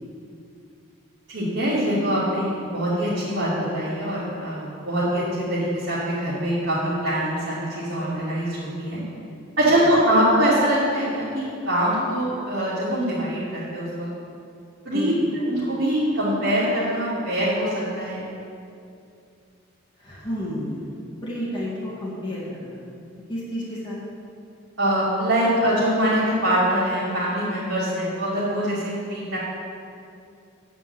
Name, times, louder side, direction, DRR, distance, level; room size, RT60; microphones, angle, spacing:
voice 1, 1.3-9.0 9.6-14.1 14.8-17.7 17.9-18.2 24.8-29.4, right 1 dB, 60° right, -12 dB, 2.7 m, -23 dB
voice 2, 20.0-20.8 21.2-22.8 23.3-24.0, equal, 25° left, -9 dB, 2.2 m, -31 dB
9.1 x 5.1 x 8.0 m, 2.5 s
head